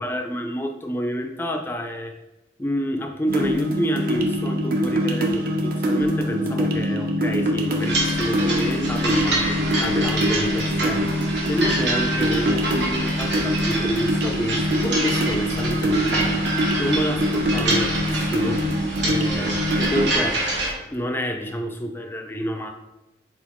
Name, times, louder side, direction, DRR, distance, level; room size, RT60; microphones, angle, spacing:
voice 1, 0.0-2.2 2.6-11.1 11.5-16.4 16.8-18.6 19.0-20.4 20.9-22.7, equal, 10° left, 5 dB, 0.3 m, -28 dB
sound 1, 3.3-20.1, equal, 50° right, 0.5 m, -24 dB
sound 2, 7.8-20.7, right 2 dB, 80° right, 1.1 m, -27 dB
4.1 x 3.7 x 3.0 m, 1.0 s
head